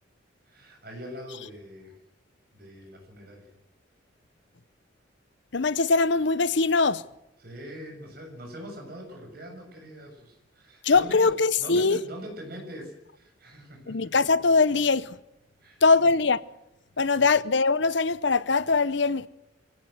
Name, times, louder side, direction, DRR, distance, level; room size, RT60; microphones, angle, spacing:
voice 1, 0.5-2.0 2.5-3.5 7.4-14.1 15.6-16.1 17.1-17.2, equal, 50° right, 7.0 m, -42 dB
voice 2, 5.5-7.0 10.8-12.0 13.9-15.2 15.8-16.4 17.0-19.3, left 4 dB, 65° left, 0.8 m, -22 dB
24.5 x 17.0 x 7.9 m
head